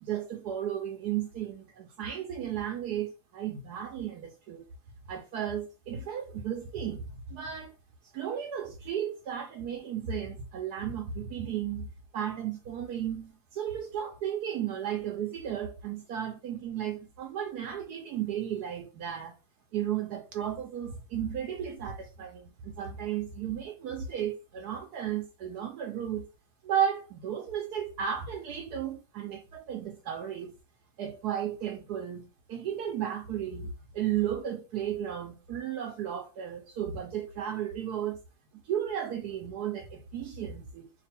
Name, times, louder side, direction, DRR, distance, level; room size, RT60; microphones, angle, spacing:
voice 1, 0.0-4.7 5.1-7.7 8.1-19.3 19.7-26.3 26.6-30.5 31.0-38.2 38.6-40.9, right 9 dB, 70° right, 1.1 m, -34 dB
2.9 x 2.5 x 4.2 m
omnidirectional pair, 1.9 m